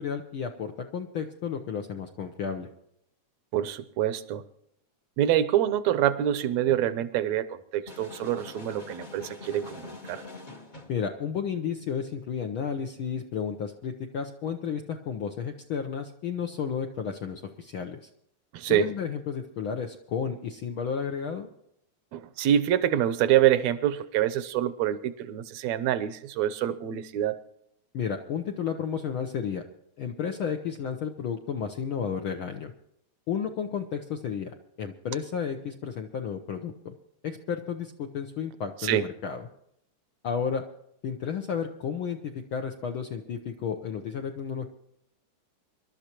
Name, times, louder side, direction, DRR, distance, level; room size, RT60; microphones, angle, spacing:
voice 1, 0.0-2.7 10.9-18.0 18.7-21.5 27.9-29.6 30.0-32.7 33.3-36.9 37.2-39.5 40.2-40.6 41.0-44.7, left 7 dB, 70° left, 5 dB, 1.2 m, -32 dB
voice 2, 3.5-4.4 5.2-10.2 18.5-18.9 22.1-27.4 38.8-39.1, right 11 dB, 75° right, 14 dB, 1.9 m, -26 dB
sound 1, 7.9-11.0, left 3 dB, 45° left, 0.6 m, -44 dB
25.0 x 12.5 x 3.0 m, 0.74 s
omnidirectional pair, 3.4 m